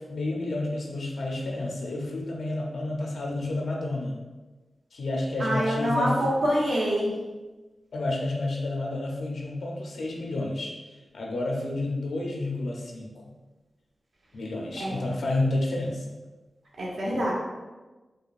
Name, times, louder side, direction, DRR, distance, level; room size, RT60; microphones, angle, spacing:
voice 1, 0.0-4.2 4.9-6.1 7.9-10.7 11.1-13.1 14.3-16.1, left 2 dB, 85° left, -1 dB, 0.7 m, -30 dB
voice 2, 5.4-7.1 14.8-15.1 16.8-17.3, equal, 80° right, -5 dB, 1.2 m, -26 dB
5.0 x 2.3 x 2.5 m, 1.2 s
wide cardioid pair, 95°, 0 cm